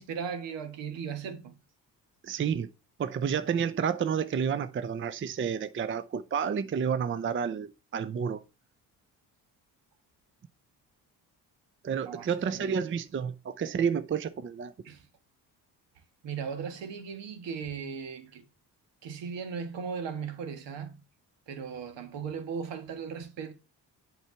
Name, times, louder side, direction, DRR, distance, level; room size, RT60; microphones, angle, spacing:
voice 1, 0.0-1.5 12.1-12.3 12.5-12.8 14.8-15.0 16.2-18.4 19.0-21.0 21.5-23.5, right 6 dB, 70° right, 1.6 m, -37 dB
voice 2, 2.2-2.7 3.0-8.4 11.8-14.7, right 7 dB, 25° right, 0.6 m, -30 dB
8.1 x 4.6 x 5.7 m
hypercardioid pair, 50°, 46 cm